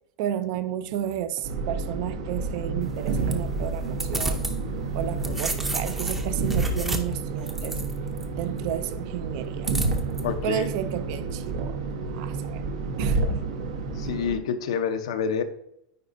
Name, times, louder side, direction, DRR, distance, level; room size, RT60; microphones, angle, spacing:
voice 1, 0.2-4.5 4.9-7.8 8.4-9.7 10.4-11.8 12.1-12.6 13.0-13.5, right 11 dB, 55° right, 0.5 m, -32 dB
sound 1, 1.4-14.4, right 3 dB, 80° right, 1.1 m, -29 dB
sound 2, 2.8-4.6 4.9-8.2 9.6-10.2, right 2 dB, 10° right, 0.6 m, -33 dB
voice 2, 10.2-10.7 14.0-15.4, left 7 dB, 85° left, 0.8 m, -27 dB
9.5 x 4.1 x 2.6 m
supercardioid pair, 155°, 3 cm